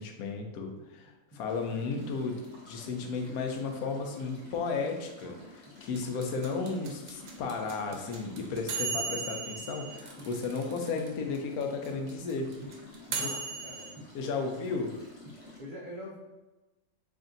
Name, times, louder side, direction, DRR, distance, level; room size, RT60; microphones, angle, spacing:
voice 1, 0.0-2.4 2.7-12.5 13.1-13.3 14.1-14.9, left 4 dB, 80° left, 3 dB, 1.1 m, -34 dB
sound 1, 0.8-1.4 1.7-3.4 3.7-5.3 5.7-8.4 8.6-9.3 9.6-10.3 10.6-11.3 11.6-11.9 12.3-15.0 15.3-15.5, left 1 dB, 10° right, 0.6 m, -51 dB
sound 2, 1.4-15.6, left 3 dB, 50° left, 1.2 m, -52 dB
sound 3, 5.9-11.1 11.3-11.4 11.6-13.9, right 4 dB, 65° right, 0.9 m, -36 dB
voice 2, 13.1-13.9 15.6-16.2, left 1 dB, 85° right, -2 dB, 0.4 m, -43 dB
3.4 x 2.5 x 3.8 m, 1.1 s
omnidirectional pair, 1.5 m